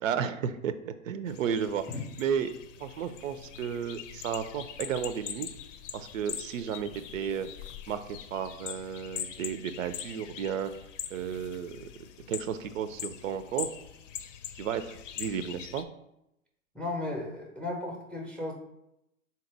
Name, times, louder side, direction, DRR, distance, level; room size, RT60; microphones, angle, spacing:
voice 1, 0.0-1.8 2.2-5.5 5.9-7.5 7.9-8.0 8.3-10.7 11.1-11.9 12.3-13.7 14.6-15.8, right 8 dB, 65° right, 11 dB, 0.5 m, -33 dB
sound 1, 1.3-15.8, left 9 dB, 60° left, 0.6 m, -42 dB
voice 2, 16.7-18.5, left 2 dB, 5° left, 0 dB, 0.5 m, -35 dB
3.7 x 2.9 x 4.5 m, 0.84 s
hypercardioid pair, 110°, 42 cm